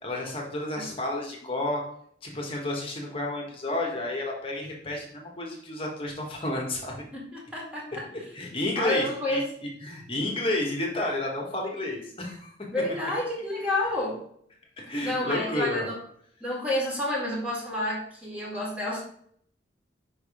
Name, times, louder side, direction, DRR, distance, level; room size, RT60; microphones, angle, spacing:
voice 1, 0.0-1.8 2.2-7.0 8.1-9.4 9.8-12.5 14.8-15.9, left 1 dB, 30° left, 0 dB, 1.3 m, -31 dB
voice 2, 7.1-8.0 8.8-9.4 12.7-14.2 15.0-16.0 16.4-19.0, left 1 dB, 5° right, -5 dB, 1.8 m, -29 dB
5.4 x 3.6 x 4.9 m, 0.63 s
head